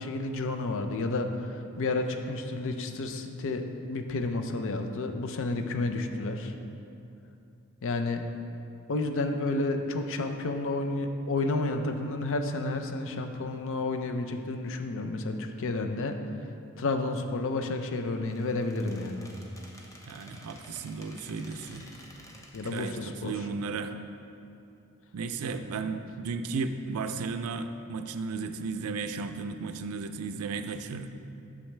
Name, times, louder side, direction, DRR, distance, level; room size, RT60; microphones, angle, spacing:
voice 1, 0.0-3.6 3.9-6.5 7.8-8.2 8.9-16.2 16.8-19.3 22.5-23.5, left 2 dB, 60° left, 6 dB, 0.5 m, -31 dB
Squeak, 18.2-23.3, equal, 15° left, 0.8 m, -52 dB
voice 2, 20.1-21.9 22.6-24.0 25.1-31.1, right 4 dB, 70° right, 9 dB, 0.4 m, -34 dB
8.7 x 6.3 x 3.3 m, 2.7 s
head